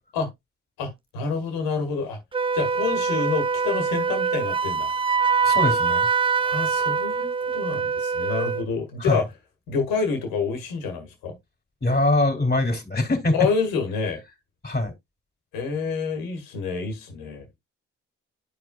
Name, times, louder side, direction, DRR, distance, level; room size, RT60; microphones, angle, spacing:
voice 1, 0.8-2.2 2.5-4.9 6.4-9.3 9.7-11.3 13.3-14.2 15.5-17.4, left 5 dB, 85° left, 1.6 m, -28 dB
Wind instrument woodwind instrument, 2.3-8.7, right 5 dB, 15° right, 0.4 m, -24 dB
voice 2, 5.4-6.1 9.0-9.2 11.8-13.5 14.6-14.9, left 2 dB, 30° left, 2.8 m, -23 dB
11.5 x 4.7 x 2.3 m
hypercardioid pair, 40°, 34 cm